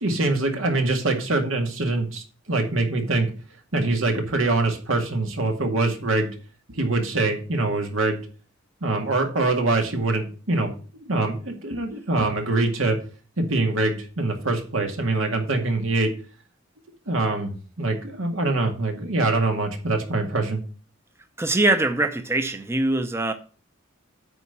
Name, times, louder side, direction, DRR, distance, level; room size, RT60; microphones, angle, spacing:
voice 1, 0.0-3.3 3.7-6.3 6.7-8.2 8.8-10.7 11.0-13.0 13.4-16.1 17.1-20.6, right 2 dB, 85° right, 2.1 m, -24 dB
voice 2, 21.4-23.3, right 2 dB, 15° right, 0.6 m, -22 dB
9.1 x 4.2 x 6.7 m
head